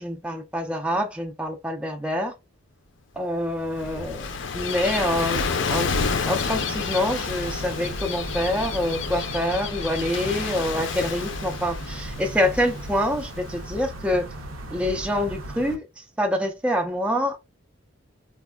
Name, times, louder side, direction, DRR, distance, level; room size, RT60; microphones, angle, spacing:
voice 1, 0.0-2.3 3.2-4.3 4.5-5.4 5.7-5.9 6.3-14.3 14.7-17.4, left 1 dB, 5° right, 0.3 m, -26 dB
Gull seagull / Waves surf, 3.4-14.0, left 5 dB, 65° left, 0.5 m, -30 dB
sound 1, 6.4-15.8, right 1 dB, 90° right, 0.7 m, -37 dB
4.1 x 2.3 x 2.2 m
head